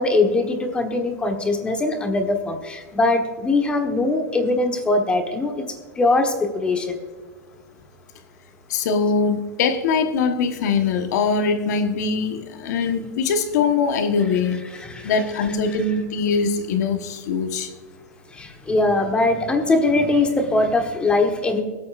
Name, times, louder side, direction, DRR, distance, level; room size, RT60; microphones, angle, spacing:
voice 1, 0.0-7.0 14.7-15.2 18.3-21.6, left 2 dB, 10° left, 4 dB, 1.3 m, -21 dB
voice 2, 8.7-14.6 15.0-17.7, left 5 dB, 65° left, 6 dB, 1.3 m, -22 dB
23.5 x 8.6 x 2.5 m, 1.4 s
supercardioid pair, 155°, 10 cm